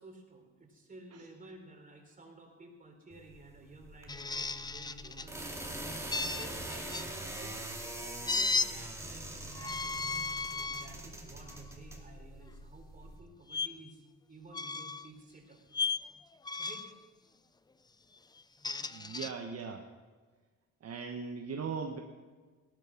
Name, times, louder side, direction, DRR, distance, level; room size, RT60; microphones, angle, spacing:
voice 1, 0.0-5.6 6.1-9.9 10.6-14.0 14.3-15.6 16.6-16.9, right 2 dB, 25° right, 2 dB, 3.7 m, -53 dB
sound 1, 3.1-13.2, right 1 dB, 10° right, 2.6 m, -43 dB
sound 2, 4.1-5.3 6.1-7.1 8.3-8.7 9.5-10.9 11.5-11.7 13.5-13.7 14.5-15.1 15.7-16.0 16.4-17.0 18.4-19.3, left 4 dB, 15° left, 0.5 m, -35 dB
voice 2, 18.9-19.8 20.8-22.0, right 5 dB, 55° right, 3 dB, 1.3 m, -39 dB
16.5 x 11.5 x 6.0 m, 1.4 s
cardioid pair, 90°, 30 cm